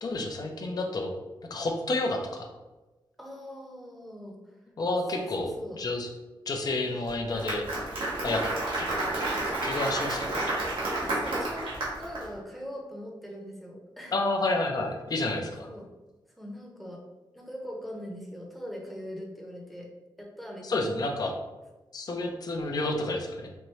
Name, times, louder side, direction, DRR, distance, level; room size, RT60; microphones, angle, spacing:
voice 1, 0.0-1.1 1.5-2.5 4.8-5.5 5.8-6.1 6.5-7.6 8.2-8.4 8.8-8.9 9.2-9.3 9.6-10.5 14.1-15.7 20.6-21.3 21.9-23.5, left 2 dB, 50° left, 2 dB, 0.6 m, -30 dB
voice 2, 3.2-4.6 5.1-5.8 11.0-14.2 15.6-15.9 16.4-17.0 17.3-19.9 20.2-20.9, equal, ahead, -1 dB, 0.8 m, -41 dB
Applause, 7.1-12.2, right 2 dB, 90° right, 1.3 m, -30 dB
4.4 x 2.6 x 3.1 m, 1.1 s
wide cardioid pair, 105°, 8 cm